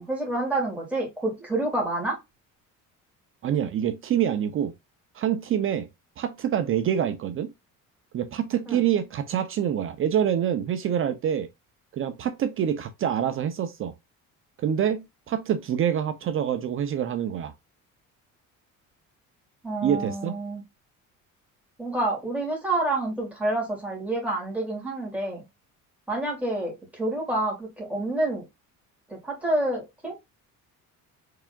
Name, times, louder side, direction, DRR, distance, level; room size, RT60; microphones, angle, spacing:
voice 1, 0.0-2.2 8.7-8.8 19.6-20.6 21.8-25.4 26.1-28.4 29.1-30.1, right 2 dB, 5° right, 2.1 m, -28 dB
voice 2, 3.4-4.7 5.1-5.9 6.2-7.5 8.1-11.5 11.9-13.9 14.6-17.5 19.8-20.3, right 9 dB, 40° right, 0.5 m, -26 dB
4.8 x 3.4 x 2.3 m
cardioid pair, 175°, 33 cm